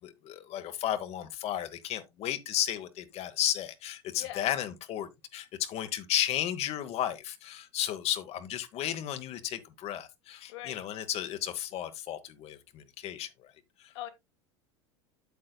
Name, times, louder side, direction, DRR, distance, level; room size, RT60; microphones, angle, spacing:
voice 1, 0.0-13.5 13.8-13.9, left 11 dB, 45° left, 1.0 m, -34 dB
voice 2, 4.1-4.5 10.5-10.8 13.9-14.1, left 13 dB, 70° left, 1.5 m, -40 dB
8.2 x 7.6 x 2.3 m
hypercardioid pair, 90°, 15 cm